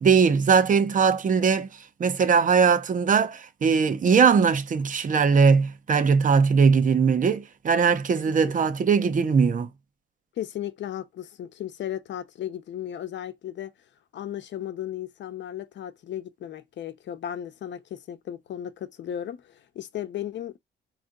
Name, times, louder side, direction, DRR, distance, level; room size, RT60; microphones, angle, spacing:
voice 1, 0.0-1.7 2.0-9.7, right 5 dB, 40° right, 0.8 m, -20 dB
voice 2, 10.4-13.7 14.1-20.6, left 11 dB, 65° left, 0.8 m, -35 dB
4.2 x 3.3 x 3.8 m
cardioid pair, 90°, 20 cm